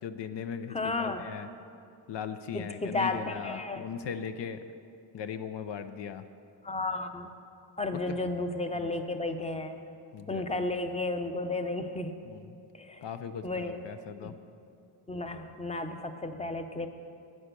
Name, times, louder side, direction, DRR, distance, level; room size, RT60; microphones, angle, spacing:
voice 1, 0.0-1.5 2.1-4.6 5.1-6.3 7.9-8.2 8.7-8.9 10.1-10.6 12.2-12.6 13.0-14.4, left 7 dB, 75° left, 9 dB, 0.7 m, -39 dB
voice 2, 0.7-1.2 2.5-3.8 6.6-7.3 7.8-9.8 10.3-12.1 12.7-13.0 13.4-13.8 14.2-14.3 15.1-16.9, left 2 dB, 15° left, 7 dB, 0.7 m, -33 dB
10.5 x 10.0 x 6.7 m, 2.5 s
wide cardioid pair, 135°, 42 cm